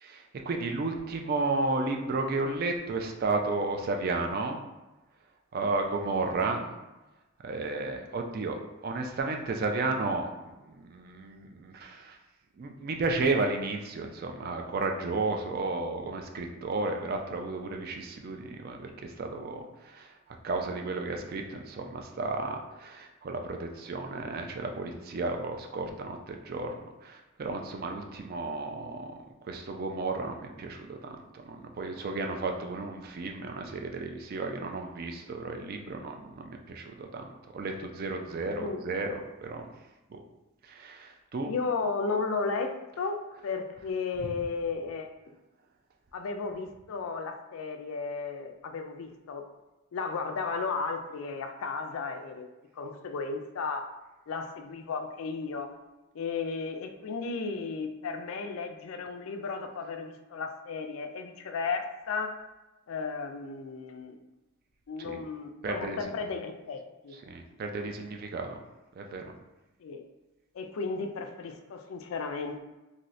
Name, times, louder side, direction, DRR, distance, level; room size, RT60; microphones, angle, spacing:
voice 1, 0.0-4.6 5.5-6.8 7.4-12.2 12.6-20.1 20.4-29.1 29.4-31.2 31.5-37.3 37.5-39.7 40.1-40.2 40.6-41.5 65.0-65.2 65.6-66.0 67.3-68.6 69.0-69.2, right 3 dB, 40° right, 3 dB, 0.3 m, -33 dB
voice 2, 38.6-39.0 41.5-45.1 46.1-49.5 49.9-52.5 52.8-53.9 54.3-55.7 56.1-62.3 62.9-64.2 64.9-67.2 69.8-70.0 70.5-72.6, left 4 dB, 65° left, 6 dB, 0.3 m, -34 dB
2.6 x 2.6 x 3.1 m, 1.1 s
head